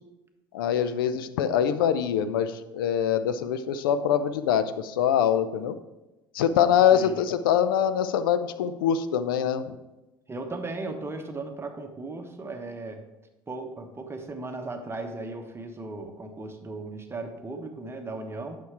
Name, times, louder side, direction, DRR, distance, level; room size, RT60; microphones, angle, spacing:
voice 1, 0.5-5.8 6.3-9.8, left 9 dB, 75° left, 11 dB, 0.6 m, -24 dB
voice 2, 10.3-13.0 13.5-18.6, right 2 dB, 20° right, 5 dB, 1.2 m, -36 dB
9.6 x 6.2 x 4.6 m, 1.0 s
hypercardioid pair, 65°, 12 cm